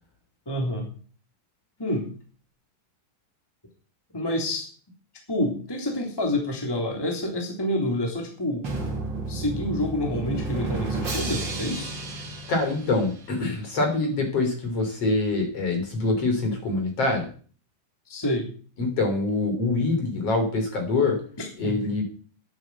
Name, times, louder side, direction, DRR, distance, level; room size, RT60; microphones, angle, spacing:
voice 1, 0.5-0.9 1.8-2.1 4.1-4.7 5.3-8.7 9.3-11.9 18.1-18.5 21.4-21.9, left 1 dB, 5° left, 1 dB, 2.9 m, -28 dB
Drum, 8.6-13.5, right 3 dB, 35° right, 2.9 m, -31 dB
voice 2, 12.5-17.3 18.8-21.2 21.6-22.0, left 3 dB, 45° left, 3 dB, 4.5 m, -25 dB
10.5 x 8.8 x 8.2 m, 0.42 s
omnidirectional pair, 3.8 m